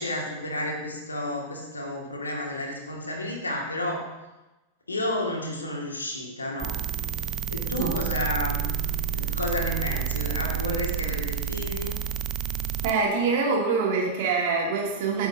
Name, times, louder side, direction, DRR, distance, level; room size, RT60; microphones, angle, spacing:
voice 1, 0.0-4.1 4.9-6.8 7.5-8.6 9.1-12.0, left 1 dB, 75° left, 0 dB, 2.1 m, -31 dB
sound 1, 6.6-12.9, right 9 dB, 30° right, 0.5 m, -29 dB
voice 2, 12.8-15.3, right 4 dB, 50° right, -2 dB, 2.7 m, -25 dB
15.0 x 7.1 x 2.8 m, 1.0 s
figure-of-eight pair, 90°, 0 cm